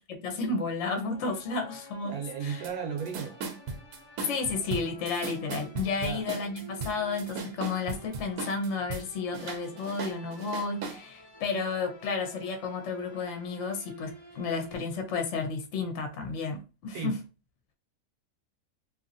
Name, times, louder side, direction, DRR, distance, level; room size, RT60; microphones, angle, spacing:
voice 1, 0.1-2.6 4.2-17.2, left 4 dB, 55° left, 0.9 m, -32 dB
sound 1, 1.0-14.8, right 1 dB, 25° left, 0.6 m, -50 dB
voice 2, 2.0-3.4 6.0-6.3 16.9-17.2, right 6 dB, 70° right, 1.1 m, -35 dB
sound 2, 2.6-2.7 3.0-9.0 9.3-11.0, right 4 dB, 85° right, 1.2 m, -37 dB
2.8 x 2.7 x 2.6 m
omnidirectional pair, 1.7 m